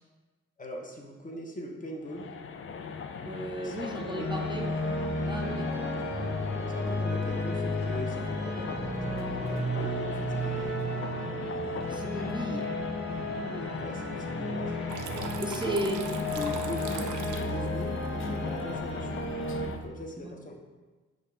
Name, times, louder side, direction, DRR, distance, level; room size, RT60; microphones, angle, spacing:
voice 1, 0.6-2.3 3.6-4.7 6.7-8.8 9.1-10.8 13.8-14.8 15.5-15.9 16.3-19.3 19.8-20.5, left 1 dB, 25° left, 0 dB, 0.9 m, -40 dB
sound 1, 2.0-19.8, left 5 dB, 45° left, 0.4 m, -40 dB
voice 2, 3.2-4.7 5.2-6.5 11.9-12.8 13.3-13.9 15.4-15.9 20.2-20.3, right 1 dB, 15° right, 0 dB, 0.5 m, -36 dB
sound 2, 4.2-19.7, left 1 dB, 60° left, 1.2 m, -33 dB
Water tap faucet / Trickle dribble, 14.9-19.9, right 7 dB, 85° right, 0.4 m, -43 dB
5.2 x 2.4 x 3.7 m, 1.3 s
cardioid pair, 60°, 30 cm